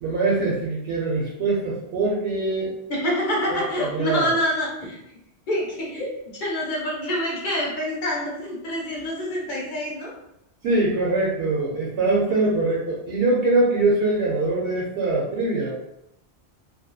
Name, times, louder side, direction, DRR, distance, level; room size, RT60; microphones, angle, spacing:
voice 1, 0.0-2.7 3.8-4.3 10.6-15.7, right 2 dB, 70° right, -4 dB, 0.8 m, -23 dB
voice 2, 2.9-5.0 5.5-10.1, equal, 50° left, -3 dB, 0.8 m, -26 dB
2.7 x 2.1 x 2.2 m, 0.86 s
omnidirectional pair, 1.1 m